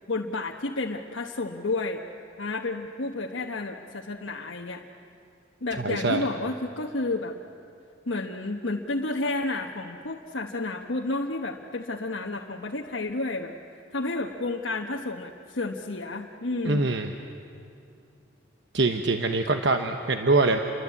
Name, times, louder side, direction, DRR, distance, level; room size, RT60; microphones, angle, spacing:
voice 1, 0.1-2.0 2.4-4.8 5.6-7.4 8.1-13.5 13.9-16.8, left 2 dB, 85° left, 0 dB, 1.2 m, -31 dB
voice 2, 5.8-6.2 16.6-17.1 18.7-20.6, right 3 dB, 65° right, 5 dB, 1.1 m, -23 dB
29.0 x 23.0 x 8.5 m, 2.5 s
head